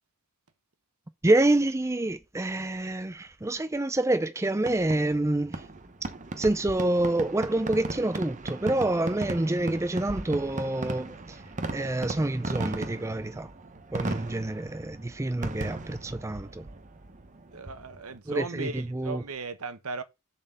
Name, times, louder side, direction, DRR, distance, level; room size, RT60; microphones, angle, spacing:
voice 1, 1.2-5.6 6.4-11.4 11.7-13.5 13.9-16.7 18.3-19.2, right 2 dB, 15° right, 0.5 m, -27 dB
Fireworks, 4.6-18.2, right 2 dB, 35° right, 0.9 m, -37 dB
voice 2, 17.5-20.0, right 3 dB, 75° right, 1.1 m, -37 dB
7.1 x 4.3 x 6.7 m
head